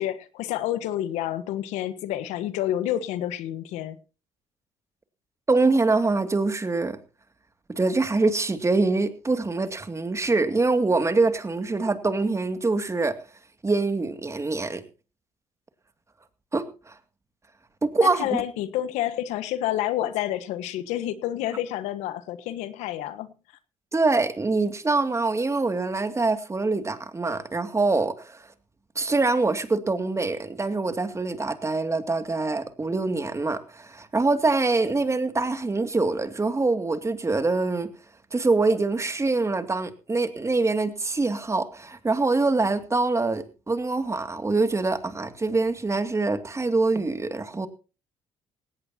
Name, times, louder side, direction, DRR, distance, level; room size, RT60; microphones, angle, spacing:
voice 1, 0.0-4.0 18.0-23.3, left 12 dB, 85° left, 1.3 m, -29 dB
voice 2, 5.5-7.0 7.7-13.2 13.6-14.8 16.5-16.9 17.8-18.3 23.9-28.5 29.0-37.9 38.3-47.7, right 3 dB, 25° right, 2.3 m, -24 dB
18.0 x 17.0 x 2.8 m
supercardioid pair, 65°, 12 cm